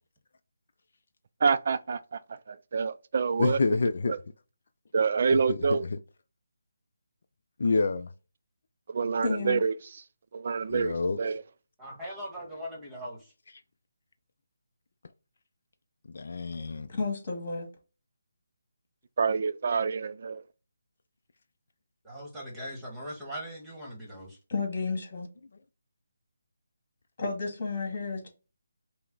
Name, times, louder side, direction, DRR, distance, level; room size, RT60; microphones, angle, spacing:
voice 1, 1.4-2.2 2.5-3.6 4.1-4.2 4.9-5.8 8.9-10.0 10.3-11.4 19.2-20.4, right 5 dB, 45° right, 0.3 m, -27 dB
voice 2, 3.4-4.1 5.5-6.0 7.6-8.1 10.7-11.2 16.1-16.9, left 3 dB, 60° left, 0.4 m, -27 dB
voice 3, 9.2-9.6 16.9-17.7 24.5-25.3 27.2-28.3, left 4 dB, 45° left, 1.9 m, -32 dB
voice 4, 11.8-13.2 22.0-24.4, equal, 5° right, 1.3 m, -40 dB
5.5 x 2.1 x 3.8 m
hypercardioid pair, 165°, 0 cm